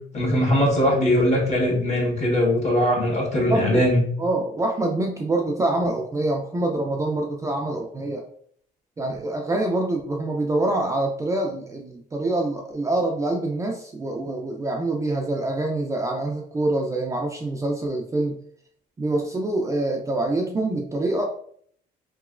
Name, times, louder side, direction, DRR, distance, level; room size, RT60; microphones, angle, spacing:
voice 1, 0.1-4.0, left 1 dB, 45° left, -2 dB, 1.4 m, -20 dB
voice 2, 3.4-3.9 4.2-8.2 9.0-18.4 19.0-21.3, right 2 dB, 20° right, 1 dB, 0.4 m, -25 dB
3.0 x 2.9 x 2.4 m, 0.62 s
cardioid pair, 110°, 17 cm